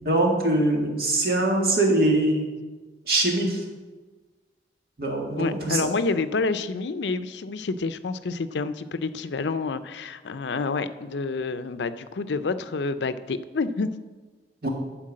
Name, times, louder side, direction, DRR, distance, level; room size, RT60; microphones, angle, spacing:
voice 1, 0.0-2.5 3.1-3.6 5.0-5.8 14.6-14.7, right 2 dB, 55° right, 0 dB, 1.9 m, -22 dB
voice 2, 5.4-13.9, left 3 dB, 80° left, 12 dB, 0.5 m, -28 dB
11.5 x 4.6 x 7.5 m, 1.3 s
head